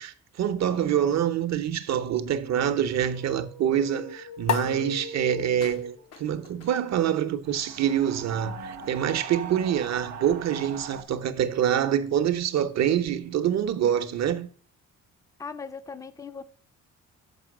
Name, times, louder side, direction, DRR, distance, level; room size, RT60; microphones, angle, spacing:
voice 1, 0.0-14.5, right 9 dB, 60° right, 0.8 m, -26 dB
sound 1, 2.5-6.1, left 4 dB, 85° left, 1.5 m, -40 dB
sound 2, 4.4-11.3, left 6 dB, 55° left, 0.8 m, -38 dB
sound 3, 7.4-11.0, right 5 dB, 90° right, 0.8 m, -40 dB
voice 2, 15.4-16.4, left 5 dB, 10° left, 0.5 m, -38 dB
6.9 x 4.5 x 6.1 m
cardioid pair, 90°, 30 cm